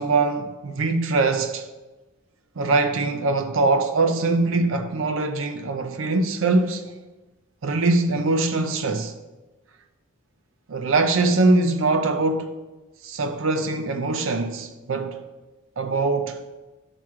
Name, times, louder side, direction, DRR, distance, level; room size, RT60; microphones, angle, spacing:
voice 1, 0.0-1.7 2.6-6.9 7.6-9.1 10.7-12.5 13.0-15.2 15.8-16.4, right 3 dB, 65° right, 0.5 m, -22 dB
5.9 x 4.8 x 6.2 m
head